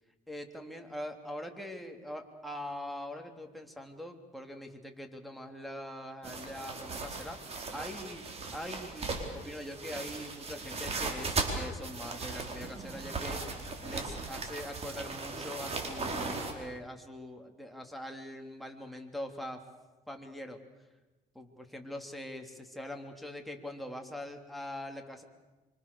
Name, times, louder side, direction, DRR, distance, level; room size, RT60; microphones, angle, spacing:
voice 1, 0.3-19.6 20.1-20.6 21.3-25.2, left 1 dB, ahead, 2 dB, 3.2 m, -43 dB
sound 1, 6.2-16.5, right 3 dB, 40° right, 4.7 m, -37 dB
26.5 x 25.0 x 6.9 m, 1.2 s
cardioid pair, 110°, 17 cm